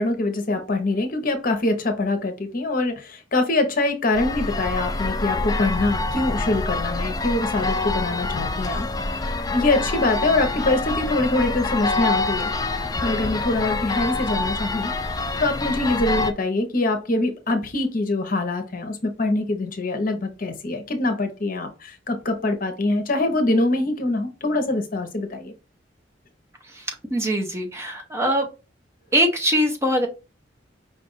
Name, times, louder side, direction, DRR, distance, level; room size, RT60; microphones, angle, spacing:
voice 1, 0.0-8.9 9.2-12.5 13.0-14.9 15.4-25.5, left 2 dB, 50° left, 6 dB, 0.9 m, -24 dB
sound 1, 4.1-16.3, left 3 dB, 20° left, 0.4 m, -26 dB
voice 2, 26.6-28.5 29.1-30.1, equal, 15° right, 3 dB, 0.8 m, -22 dB
5.3 x 2.5 x 4.0 m, 0.29 s
head